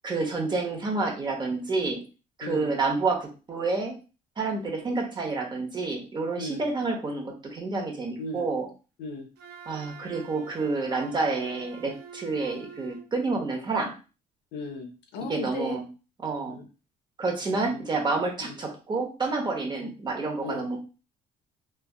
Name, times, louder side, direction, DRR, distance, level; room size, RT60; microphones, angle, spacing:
voice 1, 0.0-2.0 2.4-4.0 4.4-8.7 9.7-13.9 15.3-15.8 16.2-16.6 17.2-20.8, right 3 dB, 25° right, 2 dB, 0.8 m, -29 dB
voice 2, 2.4-2.7 6.4-6.7 8.2-8.5 9.0-9.3 14.5-15.8 16.5-16.7 17.7-18.0 18.4-18.6 19.8-19.9 20.4-20.8, left 2 dB, 85° left, 5 dB, 0.7 m, -37 dB
Wind instrument woodwind instrument, 9.4-13.1, right 6 dB, 75° right, 0.6 m, -46 dB
3.2 x 2.4 x 2.3 m, 0.33 s
cardioid pair, 110°, 17 cm